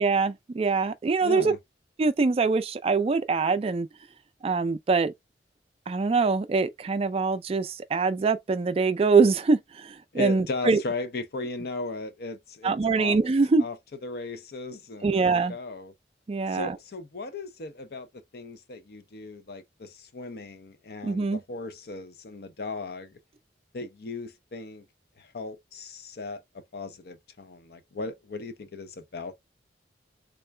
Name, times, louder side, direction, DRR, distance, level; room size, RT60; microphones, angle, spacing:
voice 1, 0.0-1.5 2.0-3.9 4.4-5.1 5.9-10.8 12.6-13.6 15.0-15.6 16.3-16.8 21.0-21.4, right 4 dB, 35° right, 0.3 m, -24 dB
voice 2, 1.2-1.6 10.1-13.2 13.6-13.8 14.0-15.9 16.5-23.2 23.7-24.8 25.2-26.4 26.7-29.4, left 3 dB, 60° left, 0.5 m, -37 dB
3.7 x 2.3 x 3.2 m
head